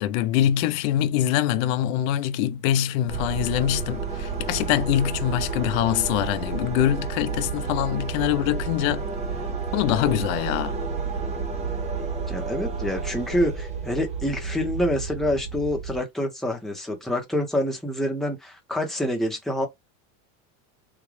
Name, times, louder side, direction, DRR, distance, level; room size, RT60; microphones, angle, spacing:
voice 1, 0.0-9.1 9.7-10.8, left 12 dB, 75° left, 0.6 m, -24 dB
sound 1, 3.1-16.0, right 5 dB, 20° right, 0.4 m, -31 dB
voice 2, 12.3-19.7, left 1 dB, ahead, 0.7 m, -27 dB
3.7 x 2.2 x 3.1 m
cardioid pair, 155°, 40 cm